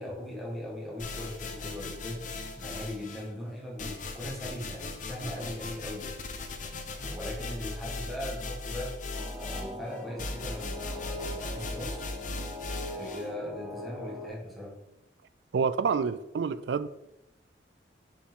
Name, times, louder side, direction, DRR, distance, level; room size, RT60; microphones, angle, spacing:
voice 1, 0.0-2.2 2.6-6.1 7.0-9.0 9.4-12.1 12.9-14.7, left 1 dB, ahead, -5 dB, 1.7 m, -39 dB
sound 1, 1.0-3.3 3.8-13.3, left 3 dB, 45° left, 0.8 m, -38 dB
sound 2, 9.1-14.3, left 1 dB, 15° right, 1.9 m, -41 dB
voice 2, 15.5-16.9, right 5 dB, 75° right, 14 dB, 0.4 m, -28 dB
6.9 x 5.0 x 3.6 m, 0.90 s
head